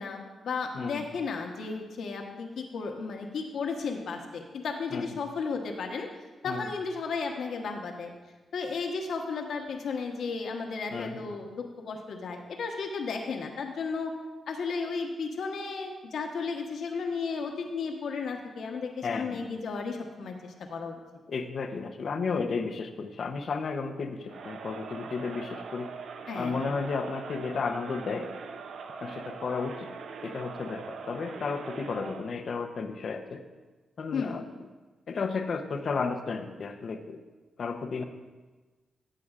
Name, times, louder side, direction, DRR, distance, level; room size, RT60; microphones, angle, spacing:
voice 1, 0.0-6.1 6.4-8.1 8.5-14.1 14.5-21.0 26.3-26.6 34.1-34.4, left 4 dB, 75° left, 2 dB, 1.2 m, -34 dB
voice 2, 10.9-11.2 19.0-19.4 21.3-25.9 26.3-28.3 29.0-29.9 30.2-33.4 34.0-34.4 35.1-37.2 37.6-38.0, left 4 dB, 55° left, 6 dB, 0.7 m, -33 dB
Crowd, 24.3-32.4, right 5 dB, 75° right, 0.5 m, -42 dB
15.0 x 7.7 x 2.4 m, 1.3 s
cardioid pair, 100°, 0 cm